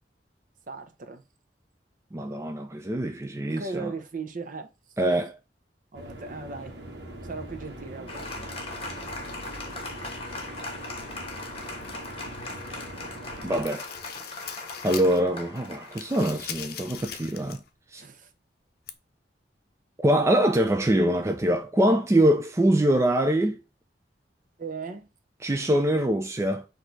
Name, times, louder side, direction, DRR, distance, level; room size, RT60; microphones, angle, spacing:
voice 1, 0.7-1.2 3.5-4.7 5.9-6.8 7.2-8.6 18.0-18.3 24.6-25.1, right 4 dB, 50° right, 0.7 m, -37 dB
voice 2, 2.1-3.9 5.0-5.3 13.4-13.8 14.8-17.6 17.9-18.0 20.0-23.6 25.4-26.6, right 1 dB, 15° right, 0.4 m, -24 dB
sound 1, 5.9-13.7, right 1 dB, 70° right, 1.2 m, -42 dB
Applause, 8.1-17.1, left 2 dB, 35° left, 1.1 m, -39 dB
sound 2, 11.8-12.8 13.2-15.3 15.6-17.7 18.0-18.1 18.9-19.0, left 8 dB, 60° left, 0.6 m, -41 dB
4.3 x 2.7 x 4.4 m
head